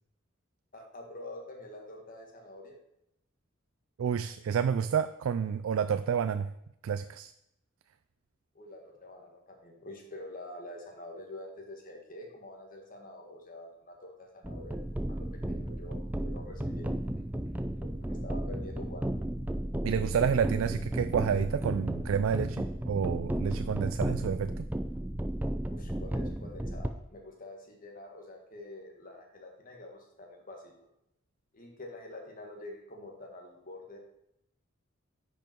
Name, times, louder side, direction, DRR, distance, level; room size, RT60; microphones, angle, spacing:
voice 1, 0.7-2.8 8.5-16.9 17.2-17.3 17.7-19.1 25.7-30.7 31.5-34.0, left 1 dB, 45° left, 1 dB, 1.8 m, -46 dB
voice 2, 4.0-6.5 6.8-7.3 19.8-24.6, right 7 dB, 90° right, 12 dB, 0.3 m, -29 dB
sound 1, 14.4-26.9, right 1 dB, 10° right, 0.4 m, -34 dB
10.0 x 5.6 x 4.5 m, 0.80 s
head